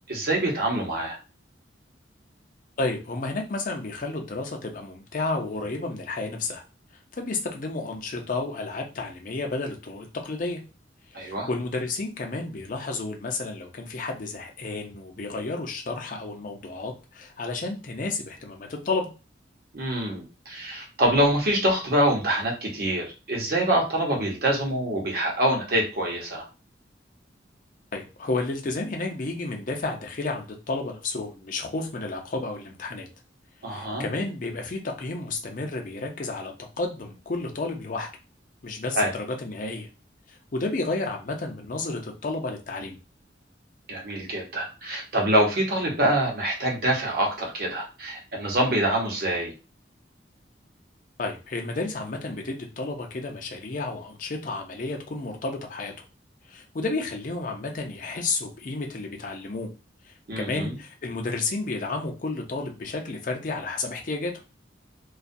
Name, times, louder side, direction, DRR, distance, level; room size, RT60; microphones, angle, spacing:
voice 1, 0.1-1.2 11.1-11.5 19.7-26.4 33.6-34.1 38.9-39.1 43.9-49.5 60.3-60.7, right 1 dB, 55° right, -1 dB, 0.8 m, -25 dB
voice 2, 2.8-6.6 7.2-10.6 11.1-19.1 27.9-33.1 33.7-38.1 38.6-39.9 40.3-43.0 51.2-55.9 56.5-59.7 60.1-64.4, left 3 dB, 45° left, 2 dB, 0.5 m, -31 dB
2.3 x 2.1 x 2.6 m, 0.31 s
head